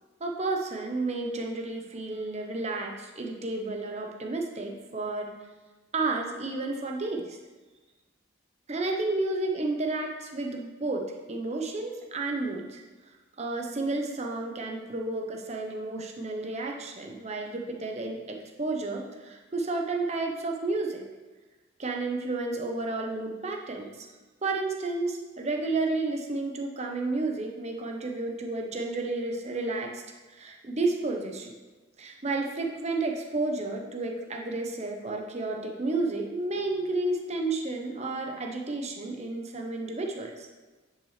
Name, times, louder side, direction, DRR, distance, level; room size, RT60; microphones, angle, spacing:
voice 1, 0.2-5.3 5.9-7.4 8.7-11.0 11.3-12.8 13.4-21.0 21.8-23.9 24.4-30.0 30.3-31.5 32.0-40.5, right 2 dB, 35° right, 2 dB, 0.9 m, -31 dB
9.6 x 5.7 x 3.3 m, 1.2 s
head